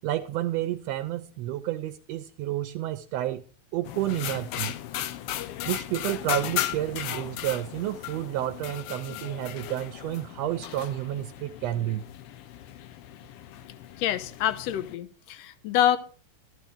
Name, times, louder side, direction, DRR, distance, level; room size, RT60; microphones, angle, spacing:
voice 1, 0.0-3.4 3.7-4.8 5.7-12.1, right 13 dB, 75° right, 1.6 m, -30 dB
sound 1, 3.8-14.9, left 13 dB, 85° left, 1.3 m, -36 dB
voice 2, 14.0-16.0, left 11 dB, 70° left, 1.9 m, -26 dB
13.5 x 11.5 x 3.6 m
omnidirectional pair, 3.4 m